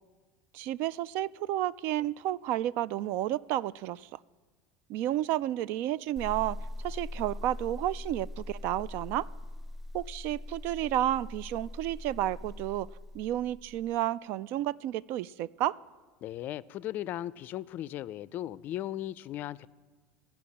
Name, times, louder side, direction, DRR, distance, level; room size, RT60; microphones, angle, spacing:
voice 1, 0.5-4.1 4.9-6.6 6.8-9.3 9.9-12.9 13.1-15.8, right 13 dB, 65° right, 21 dB, 0.3 m, -31 dB
sound 1, 6.2-14.0, left 1 dB, 5° right, 0.5 m, -42 dB
voice 2, 16.2-19.7, left 13 dB, 50° left, 18 dB, 0.4 m, -37 dB
14.5 x 6.0 x 8.5 m, 1.4 s
supercardioid pair, 105°, 4 cm